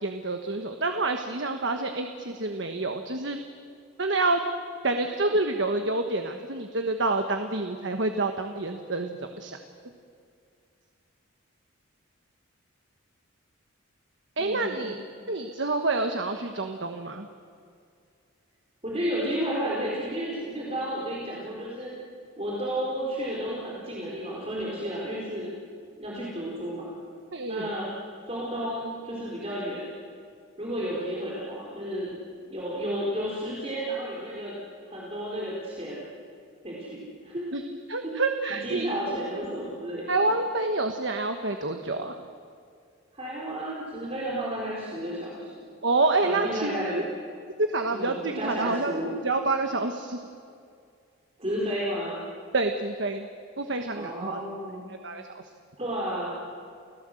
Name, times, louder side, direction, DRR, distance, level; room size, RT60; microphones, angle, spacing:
voice 1, 0.0-3.4 4.0-4.4 4.8-9.6 14.4-15.0 15.3-17.3 27.3-27.7 37.5-37.6 37.9-38.9 40.1-42.2 45.8-47.0 47.6-49.0 49.2-50.2 52.5-53.3 53.6-54.4 55.0-55.4, right 2 dB, 60° right, 5 dB, 1.3 m, -28 dB
voice 2, 14.4-14.9 18.8-21.9 22.4-25.5 26.0-26.9 27.5-27.9 28.3-29.8 30.6-32.2 32.5-34.6 34.9-36.1 36.6-37.4 38.0-38.1 38.6-40.3 43.1-45.5 46.2-47.1 47.9-49.1 51.4-52.2 53.9-54.8 55.8-56.3, equal, 30° right, -5 dB, 4.3 m, -32 dB
29.5 x 17.0 x 7.8 m, 2.3 s
head